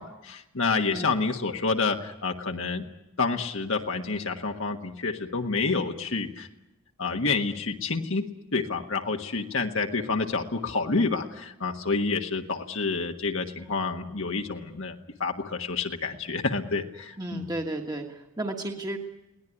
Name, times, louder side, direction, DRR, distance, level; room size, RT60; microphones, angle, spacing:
voice 1, 0.0-2.9 3.2-6.5 7.0-8.2 8.5-14.9 15.2-17.5, left 4 dB, 65° left, 3 dB, 1.5 m, -28 dB
voice 2, 17.2-19.0, right 1 dB, 20° right, 2 dB, 1.5 m, -33 dB
22.0 x 18.0 x 10.0 m, 0.94 s
head